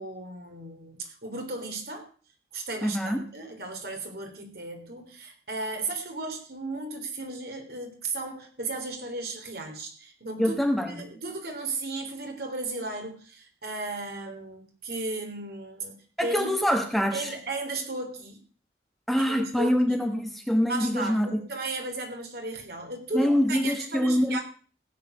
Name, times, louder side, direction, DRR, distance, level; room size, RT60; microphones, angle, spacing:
voice 1, 0.0-2.1 2.5-10.5 10.9-16.5 17.1-18.4 19.2-20.0 20.7-24.4, right 2 dB, 60° right, 4 dB, 3.6 m, -35 dB
voice 2, 2.8-3.3 10.4-11.0 16.2-17.3 19.1-21.4 23.1-24.4, equal, ahead, 5 dB, 1.2 m, -25 dB
16.0 x 7.9 x 6.6 m, 0.41 s
head